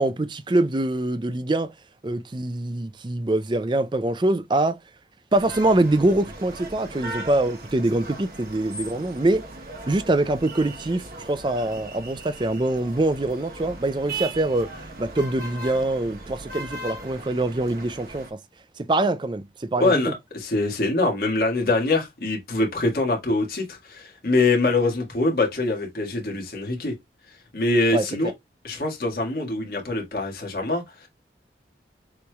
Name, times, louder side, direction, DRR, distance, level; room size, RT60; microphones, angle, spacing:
voice 1, 0.0-1.7 2.0-4.8 5.3-9.4 9.9-14.7 15.0-18.4 18.8-20.0 27.9-28.3, right 2 dB, 25° right, 0.4 m, -24 dB
sound 1, 5.3-18.3, right 2 dB, 55° right, 1.1 m, -38 dB
voice 2, 19.8-26.9 27.5-28.3 28.6-31.1, left 2 dB, 55° left, 1.7 m, -24 dB
6.8 x 3.2 x 2.3 m
head